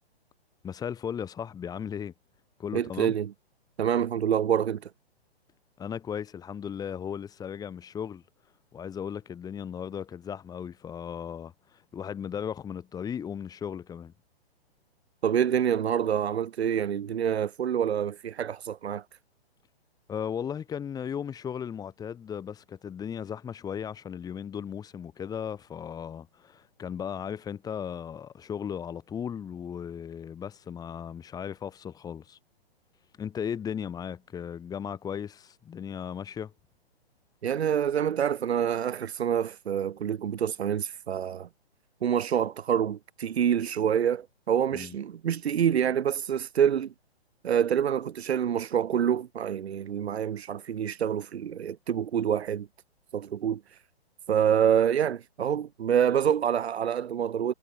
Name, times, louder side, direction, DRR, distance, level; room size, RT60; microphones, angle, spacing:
voice 1, 0.6-2.1 2.6-3.1 5.8-8.2 8.7-14.1 20.1-32.4 33.2-36.5 44.7-45.0, left 8 dB, 10° left, 6.0 m, -36 dB
voice 2, 2.7-3.3 3.8-4.9 15.2-19.0 37.4-41.5 42.0-46.9 47.4-52.7 53.1-53.8 54.3-57.5, right 9 dB, 75° right, 0.8 m, -27 dB
hypercardioid pair, 150°, 32 cm